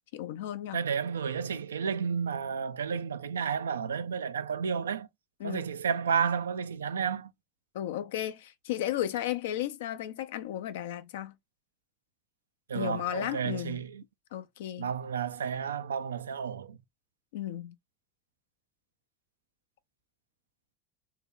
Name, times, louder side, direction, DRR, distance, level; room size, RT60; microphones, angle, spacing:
voice 1, 0.1-0.8 5.4-5.6 7.7-11.3 12.7-13.8 14.3-14.9 17.3-17.7, left 12 dB, 70° left, 0.4 m, -34 dB
voice 2, 0.7-5.1 5.4-7.3 12.7-14.0 14.8-16.8, right 6 dB, 80° right, 0.3 m, -31 dB
2.8 x 2.8 x 3.6 m
figure-of-eight pair, 70°, 0 cm